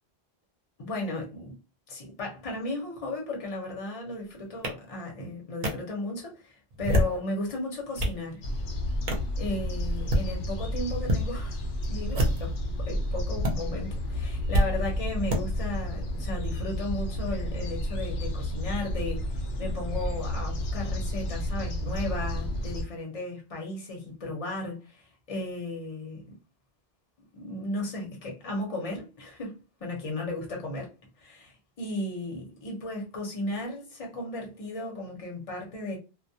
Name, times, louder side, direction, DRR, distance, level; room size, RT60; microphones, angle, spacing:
voice 1, 0.8-1.6 1.9-8.4 9.4-11.6 11.9-26.2 27.3-30.9 31.2-36.0, left 2 dB, 40° left, 0.8 m, -35 dB
sound 1, 4.6-4.7 5.6-5.7 6.7-7.2 7.7-8.2 9.1-9.3 9.9-10.3 11.0-11.2 12.1-12.6 13.4-13.5 14.5-14.7 15.3-15.4, equal, 55° right, 0.7 m, -25 dB
sound 2, 8.4-22.8, left 1 dB, 85° left, 0.9 m, -31 dB
2.2 x 2.1 x 2.7 m
omnidirectional pair, 1.0 m